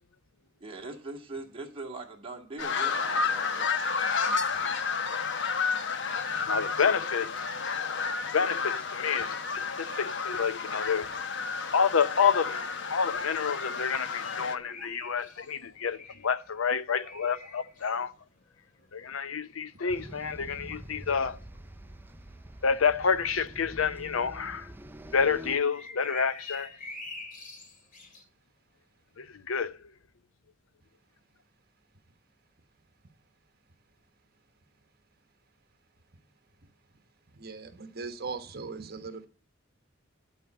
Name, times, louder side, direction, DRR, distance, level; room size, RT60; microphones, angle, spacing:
voice 1, 0.6-3.7, right 3 dB, 30° right, 2.1 m, -41 dB
sound 1, 2.6-14.6, left 5 dB, 60° left, 1.1 m, -31 dB
voice 2, 6.5-7.5 8.3-11.1 11.7-18.1 18.9-21.4 22.6-24.7 25.1-26.7 29.2-29.8, left 6 dB, 85° left, 0.7 m, -29 dB
sound 2, 9.7-10.3 10.5-10.6 10.8-23.1 23.5-24.0 24.3-24.4 24.6-28.2, left 3 dB, 40° left, 3.2 m, -47 dB
sound 3, 19.9-25.6, equal, 10° right, 0.5 m, -45 dB
voice 3, 37.3-39.3, right 4 dB, 50° right, 1.3 m, -39 dB
12.0 x 4.5 x 7.8 m
head